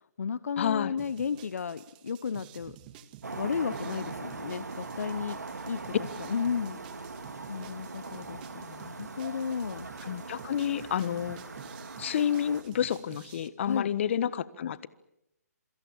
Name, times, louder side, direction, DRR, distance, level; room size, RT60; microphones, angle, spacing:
voice 1, 0.0-2.8 3.3-5.4 5.7-5.9 6.3-6.8 7.4-9.9 13.6-13.9, left 6 dB, 65° left, 17 dB, 0.9 m, -33 dB
voice 2, 0.6-1.0 10.1-11.4 12.0-14.9, left 9 dB, 45° left, 18 dB, 1.3 m, -29 dB
sound 1, 1.0-13.5, right 11 dB, 30° right, 1.8 m, -52 dB
sound 2, 3.2-12.6, right 3 dB, 80° right, 2.9 m, -41 dB
27.5 x 23.0 x 7.5 m, 0.86 s
figure-of-eight pair, 140°, 9 cm